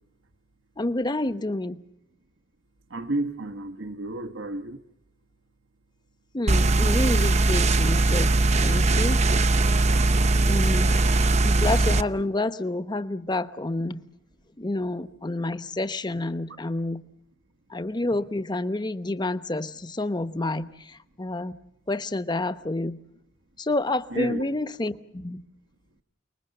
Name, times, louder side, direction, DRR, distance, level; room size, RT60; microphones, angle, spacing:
voice 1, 0.8-1.8 6.3-9.2 10.5-10.9 11.4-14.0 14.6-17.0 17.7-21.5 21.9-23.0 23.6-25.4, left 2 dB, 25° left, 12 dB, 0.9 m, -29 dB
voice 2, 2.9-4.8 24.1-24.5, right 2 dB, 85° right, 7 dB, 1.5 m, -31 dB
sound 1, 6.5-12.0, right 2 dB, 35° right, 0.9 m, -20 dB
29.5 x 21.0 x 6.7 m, 0.82 s
head